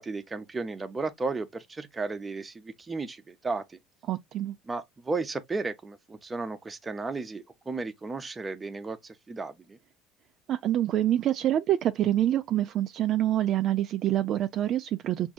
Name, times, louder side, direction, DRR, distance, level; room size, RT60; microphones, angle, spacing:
voice 1, 0.0-3.8 4.7-9.8, right 3 dB, 20° right, 0.7 m, -34 dB
voice 2, 4.1-4.5 10.5-15.3, right 12 dB, 50° right, 0.3 m, -26 dB
6.0 x 2.6 x 2.3 m
cardioid pair, 120°, 0 cm